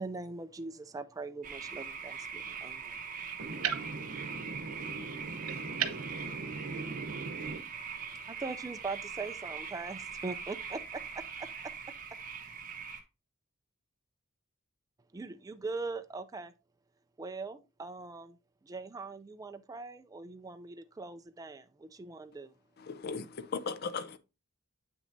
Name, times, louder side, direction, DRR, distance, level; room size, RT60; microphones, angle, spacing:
voice 1, 0.0-3.4 8.1-11.7 15.1-16.5 17.2-18.4 18.6-22.5, right 3 dB, 15° right, 0.3 m, -41 dB
sound 1, 1.4-13.0, right 6 dB, 40° right, 1.3 m, -42 dB
voice 2, 3.4-7.6, right 5 dB, 85° right, 0.9 m, -37 dB
voice 3, 22.9-24.2, left 5 dB, 45° left, 0.5 m, -37 dB
7.8 x 6.2 x 2.6 m
head